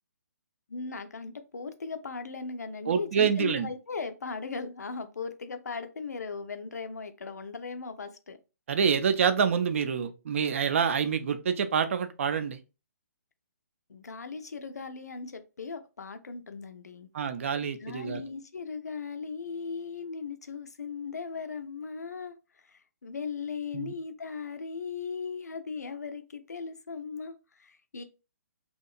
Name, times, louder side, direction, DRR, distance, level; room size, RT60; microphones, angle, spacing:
voice 1, 0.7-8.4 13.9-17.1 17.8-22.4 22.6-28.0, left 5 dB, 75° left, 0.4 m, -38 dB
voice 2, 2.9-3.7 8.7-12.6 17.1-18.2 23.7-23.9, right 7 dB, 50° right, 0.4 m, -27 dB
2.8 x 2.2 x 2.3 m
figure-of-eight pair, 130°, 9 cm